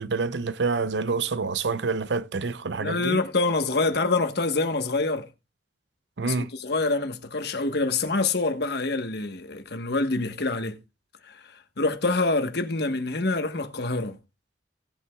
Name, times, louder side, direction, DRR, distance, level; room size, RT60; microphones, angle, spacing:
voice 1, 0.0-3.2 6.2-6.5, right 4 dB, 80° right, 0.7 m, -27 dB
voice 2, 2.8-5.3 6.2-10.8 11.2-14.2, left 3 dB, 65° left, 1.3 m, -26 dB
18.0 x 8.2 x 2.4 m
head